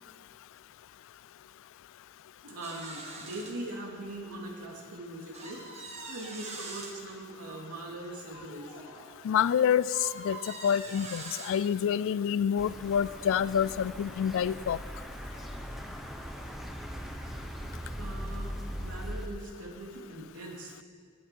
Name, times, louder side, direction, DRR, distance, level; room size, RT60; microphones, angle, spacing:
voice 1, 2.4-8.7 9.0-9.1 18.0-20.8, right 1 dB, 80° right, -1 dB, 2.5 m, -41 dB
sound 1, 2.6-3.5 4.2-4.3 5.3-6.9 8.3-9.2 9.9-11.6 12.6-14.0 14.4-14.6 14.8-15.0, right 3 dB, 30° right, 1.6 m, -44 dB
voice 2, 9.2-14.8, left 8 dB, 60° left, 18 dB, 0.3 m, -27 dB
sound 2, 12.6-19.3, equal, ahead, 0.9 m, -40 dB
16.5 x 11.0 x 4.5 m, 2.1 s
head